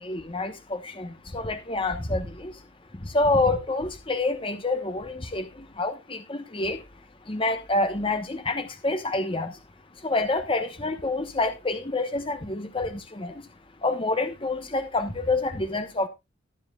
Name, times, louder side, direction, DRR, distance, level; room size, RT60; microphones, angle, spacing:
voice 1, 0.0-2.5 3.0-6.8 7.3-9.5 10.0-13.3 13.8-16.1, left 2 dB, 25° left, 1.1 m, -27 dB
18.5 x 7.3 x 2.3 m
head